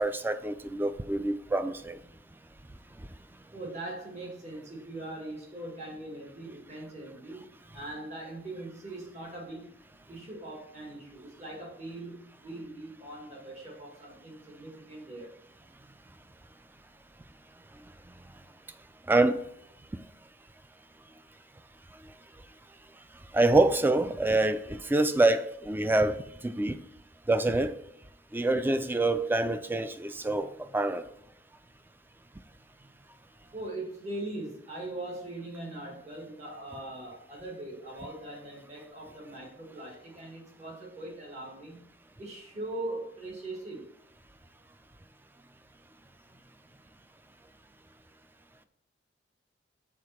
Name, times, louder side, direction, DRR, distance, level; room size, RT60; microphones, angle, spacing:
voice 1, 0.0-2.0 19.1-19.4 23.3-26.8 27.3-27.7 28.3-31.0, right 2 dB, 10° right, 11 dB, 0.3 m, -26 dB
voice 2, 3.5-7.4 7.7-9.7 10.1-15.3 33.5-41.8 42.2-43.8, right 2 dB, 40° right, -1 dB, 1.8 m, -41 dB
6.8 x 4.1 x 5.8 m, 0.73 s
head